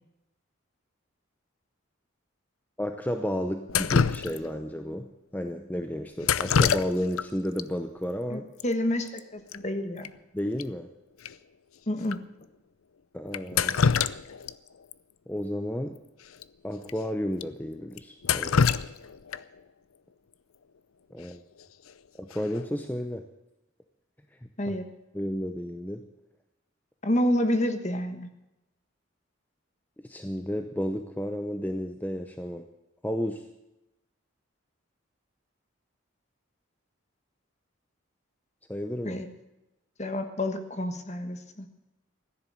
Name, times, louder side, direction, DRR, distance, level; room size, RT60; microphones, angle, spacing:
voice 1, 2.8-8.5 10.3-10.9 13.1-13.8 15.3-16.0 16.6-18.6 21.1-21.4 22.2-23.3 24.7-24.8 25.1-26.1 30.0-32.7 33.0-33.5 38.7-39.2, equal, 10° left, 6 dB, 0.7 m, -32 dB
Drip, 3.7-4.7 6.2-7.3 7.6-7.7 8.6-8.7 8.9-9.2 9.5-9.6 10.0-10.1 10.6-10.7 11.2-11.3 12.0-12.2 13.3-14.5 14.9-15.0 16.3-16.4 16.8-16.9 17.4-17.5 18.0-19.6 21.6-21.9 22.3-22.7, left 6 dB, 90° left, 0.6 m, -26 dB
voice 2, 8.3-10.1 11.9-12.2 24.6-24.8 27.0-28.3 39.0-39.3 40.0-41.7, left 1 dB, 35° left, 8 dB, 1.4 m, -29 dB
15.5 x 10.5 x 7.6 m, 0.93 s
head